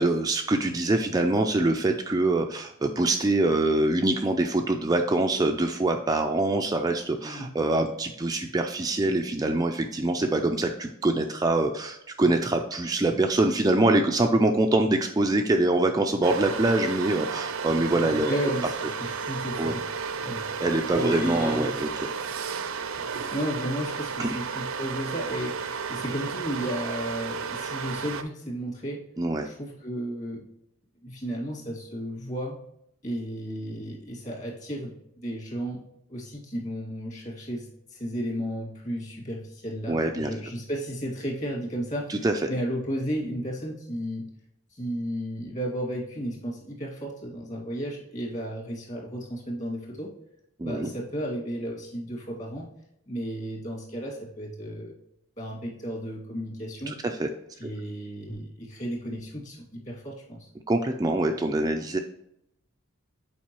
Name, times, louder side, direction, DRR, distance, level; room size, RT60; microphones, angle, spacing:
voice 1, 0.0-18.5 19.6-19.7 20.6-21.9 24.2-24.4 29.2-29.5 39.9-40.3 42.1-42.5 50.6-50.9 56.9-57.3 60.7-62.0, right 2 dB, 20° right, 4 dB, 0.3 m, -24 dB
voice 2, 7.2-7.5 18.1-20.5 20.9-21.8 23.0-25.6 25.9-29.1 29.4-30.5 31.0-32.6 33.0-35.8 36.1-44.3 44.7-50.1 50.6-52.7 53.1-54.9 55.4-57.0 57.6-60.5, equal, 35° left, -2 dB, 2.2 m, -33 dB
sound 1, 16.2-28.2, right 5 dB, 80° right, 0.6 m, -33 dB
7.3 x 4.7 x 3.0 m, 0.77 s
head